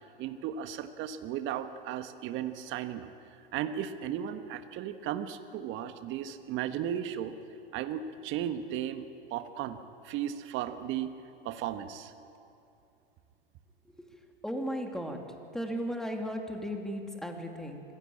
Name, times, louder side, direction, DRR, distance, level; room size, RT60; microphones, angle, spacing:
voice 1, 0.2-3.1 3.5-7.3 7.7-9.8 10.0-11.1 11.4-12.1, right 10 dB, 40° right, 9 dB, 1.5 m, -35 dB
voice 2, 14.4-15.2 15.5-17.8, equal, ahead, 3 dB, 2.8 m, -35 dB
25.0 x 17.0 x 8.8 m, 2.7 s
hypercardioid pair, 100°, 30 cm